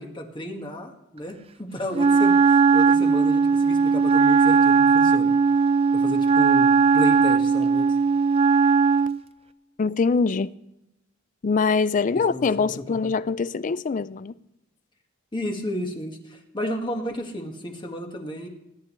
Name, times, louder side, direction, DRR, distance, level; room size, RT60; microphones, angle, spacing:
voice 1, 0.0-5.3 5.9-7.9 12.1-13.1 15.3-18.5, left 1 dB, 25° left, 1.7 m, -32 dB
Wind instrument woodwind instrument, 1.9-9.2, right 5 dB, 30° right, 0.5 m, -18 dB
voice 2, 9.8-10.5 11.4-14.3, left 4 dB, 40° left, 0.4 m, -23 dB
20.0 x 10.5 x 3.2 m
head